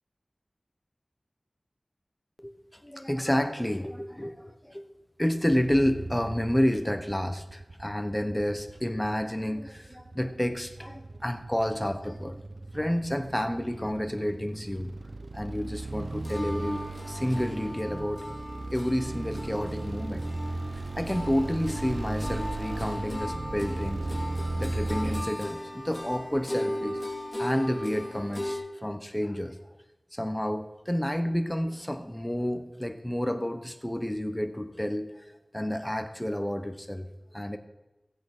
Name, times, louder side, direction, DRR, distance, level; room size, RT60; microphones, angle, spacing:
voice 1, 2.4-4.8 5.2-12.4 12.7-14.9 15.3-16.8 17.1-18.2 18.7-20.3 20.9-24.1 24.6-27.0 27.4-29.6 30.1-37.6, equal, 10° left, 8 dB, 1.2 m, -30 dB
sound 1, 5.5-25.2, right 2 dB, 70° right, 0.6 m, -37 dB
sound 2, 16.2-28.6, left 1 dB, 35° left, 3.4 m, -37 dB
14.5 x 8.4 x 6.2 m, 1.0 s
wide cardioid pair, 60°, 0 cm